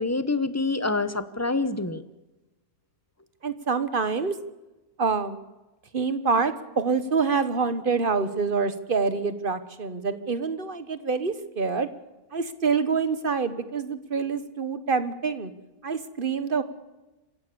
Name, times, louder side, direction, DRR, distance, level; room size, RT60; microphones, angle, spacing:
voice 1, 0.0-2.0, left 3 dB, 15° left, 12 dB, 0.7 m, -26 dB
voice 2, 3.4-4.3 5.0-5.4 5.9-11.9 12.3-15.5 15.8-16.6, right 5 dB, 35° right, 12 dB, 1.4 m, -26 dB
27.0 x 16.0 x 7.0 m, 1.0 s
omnidirectional pair, 1.7 m